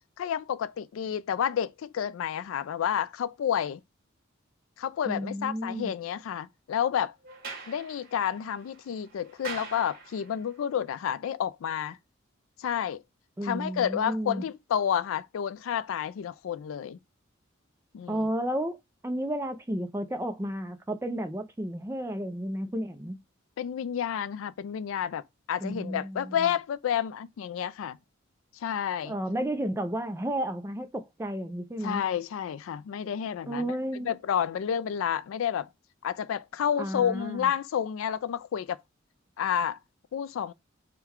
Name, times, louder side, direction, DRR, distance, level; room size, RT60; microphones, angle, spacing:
voice 1, 0.2-3.8 4.8-7.1 7.7-12.0 12.6-13.0 13.4-17.0 17.9-18.3 23.6-25.2 25.5-28.0 28.6-29.2 31.8-33.7 34.0-35.7 36.0-38.8 39.4-39.8 40.1-40.5, left 8 dB, 80° left, 0.3 m, -30 dB
voice 2, 5.1-5.9 13.4-14.4 18.1-18.8 19.0-23.2 25.6-26.3 29.0-32.0 33.5-34.1 36.8-37.5, right 1 dB, 15° right, 0.4 m, -32 dB
Sliding door, 7.2-10.5, right 4 dB, 45° right, 1.7 m, -44 dB
3.7 x 2.2 x 4.3 m
head